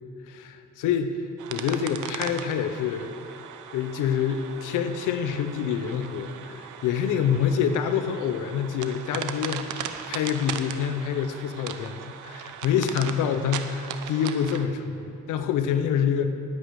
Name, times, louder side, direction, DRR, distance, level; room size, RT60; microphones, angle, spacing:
voice 1, 0.3-1.1 1.5-3.1 3.7-14.9 15.3-16.2, left 8 dB, 90° left, 8 dB, 0.9 m, -26 dB
sound 1, 1.4-14.7, right 9 dB, 80° right, 0.8 m, -38 dB
19.5 x 8.4 x 4.9 m, 2.6 s
cardioid pair, 90°, 30 cm